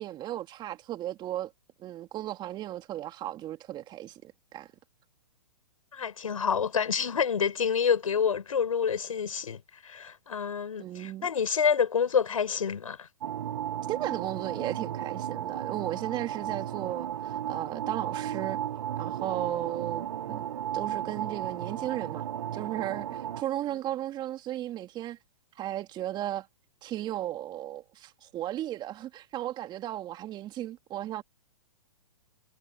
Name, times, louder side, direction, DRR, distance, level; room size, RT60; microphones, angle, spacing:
voice 1, 0.0-1.5 1.8-4.7 10.8-11.3 13.8-18.6 19.0-20.5 20.7-22.3 22.5-25.2 25.6-26.5 26.8-31.2, right 13 dB, 25° right, 2.5 m, -35 dB
voice 2, 5.9-13.1 23.7-23.8, left 7 dB, 80° left, 6.1 m, -28 dB
sound 1, 13.2-23.4, right 10 dB, 65° right, 1.4 m, -34 dB
hypercardioid pair, 125°, 17 cm